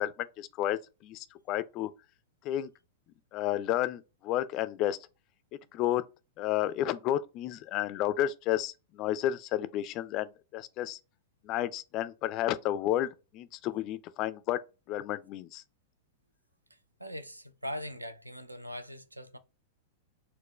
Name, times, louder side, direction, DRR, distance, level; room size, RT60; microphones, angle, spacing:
voice 1, 0.0-1.9 2.4-2.7 3.3-5.0 5.7-6.0 6.4-11.0 11.4-14.6 14.9-15.6, left 13 dB, 35° left, 0.3 m, -31 dB
voice 2, 16.7-19.4, equal, 85° right, 0.4 m, -41 dB
4.3 x 2.1 x 3.1 m
figure-of-eight pair, 95°, 0 cm